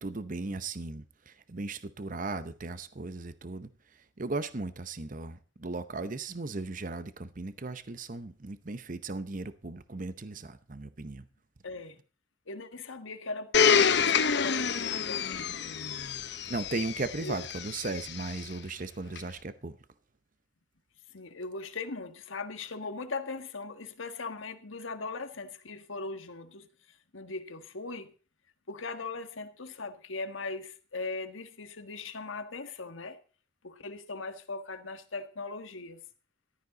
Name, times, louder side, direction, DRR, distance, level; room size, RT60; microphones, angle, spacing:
voice 1, 0.0-3.7 4.2-11.2 16.5-19.7, right 3 dB, 40° right, 0.8 m, -37 dB
voice 2, 11.6-12.0 12.5-15.6 17.2-17.4 21.1-26.7 27.1-28.1 28.7-33.2 33.6-36.0, left 3 dB, 85° left, 1.5 m, -39 dB
Domestic sounds home sounds, 13.5-18.4 19.1-19.2, left 6 dB, 60° left, 0.9 m, -27 dB
14.5 x 12.5 x 4.0 m
head